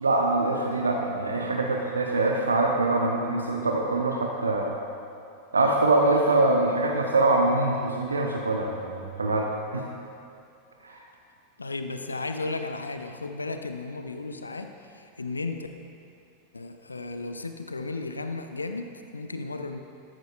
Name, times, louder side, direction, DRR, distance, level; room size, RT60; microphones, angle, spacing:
voice 1, 0.0-4.7 5.5-9.8 10.8-11.0, right 2 dB, 75° right, 1 dB, 0.8 m, -24 dB
voice 2, 11.6-15.7 16.5-19.8, left 3 dB, 80° left, 7 dB, 0.5 m, -34 dB
13.0 x 12.0 x 2.4 m, 2.5 s
figure-of-eight pair, 90°, 0 cm